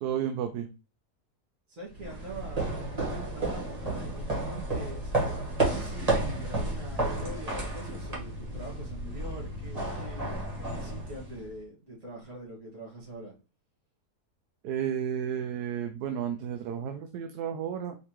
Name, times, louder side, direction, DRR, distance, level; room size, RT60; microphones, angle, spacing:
voice 1, 0.0-0.7 14.6-18.0, right 9 dB, 80° right, 7 dB, 1.1 m, -32 dB
voice 2, 1.7-5.2 5.7-13.3, right 1 dB, 55° right, -4 dB, 2.3 m, -44 dB
sound 1, 1.9-11.6, right 2 dB, 25° right, 1.4 m, -32 dB
4.8 x 3.4 x 3.0 m, 0.32 s
omnidirectional pair, 1.7 m